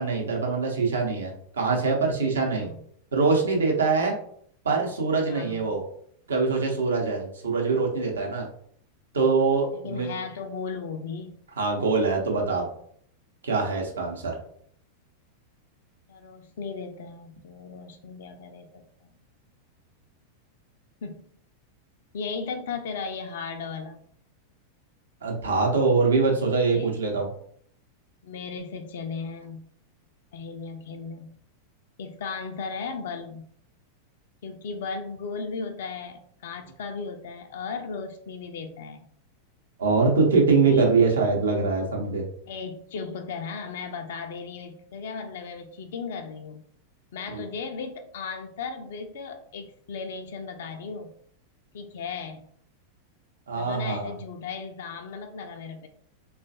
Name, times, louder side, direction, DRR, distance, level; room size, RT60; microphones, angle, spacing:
voice 1, 0.0-2.7 3.1-4.2 4.6-5.8 6.3-8.5 9.1-10.2 11.6-12.7 13.4-14.3 25.2-27.3 39.8-42.2 47.3-47.4 53.5-54.1, right 4 dB, 70° right, 0 dB, 0.8 m, -23 dB
voice 2, 2.4-2.8 5.3-5.7 9.7-11.4 16.1-19.1 21.0-21.3 22.1-24.0 26.6-26.9 28.2-29.6 30.3-31.3 32.0-33.5 34.4-39.1 40.6-41.0 42.5-46.6 47.1-51.1 51.7-52.5 53.5-55.9, left 5 dB, 60° left, 5 dB, 0.3 m, -36 dB
3.2 x 2.3 x 2.6 m, 0.63 s
figure-of-eight pair, 90°, 0 cm